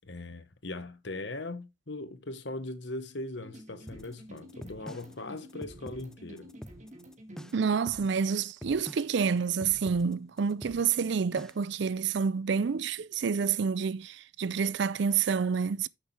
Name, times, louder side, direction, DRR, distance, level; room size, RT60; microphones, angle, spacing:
voice 1, 0.1-6.5, left 2 dB, 60° left, 1.2 m, -40 dB
sound 1, 3.4-7.6, equal, 35° right, 1.9 m, -50 dB
sound 2, 3.9-11.8, equal, 5° left, 0.4 m, -46 dB
voice 2, 7.5-15.9, right 6 dB, 60° right, 0.4 m, -28 dB
9.7 x 6.7 x 3.3 m
head